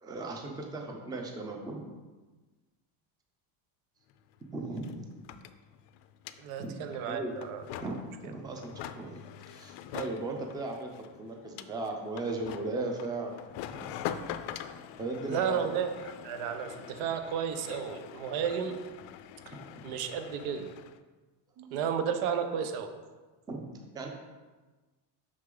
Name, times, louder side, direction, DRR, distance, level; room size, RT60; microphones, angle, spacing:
voice 1, 0.0-1.8 4.5-4.8 6.6-6.7 7.1-7.4 7.8-7.9 8.2-9.2 9.5-10.9 11.2-13.3 13.7-13.9 15.0-15.6 23.5-23.6 23.9-24.1, right 2 dB, 10° right, 2 dB, 0.4 m, -36 dB
sound 1, 4.1-4.2 4.4-21.0, left 10 dB, 65° left, 0.5 m, -44 dB
voice 2, 6.4-7.6 15.3-18.8 19.4-19.6 19.8-20.7 21.6-22.9, right 7 dB, 85° right, 7 dB, 0.9 m, -33 dB
6.3 x 5.7 x 3.8 m, 1.3 s
cardioid pair, 160°, 48 cm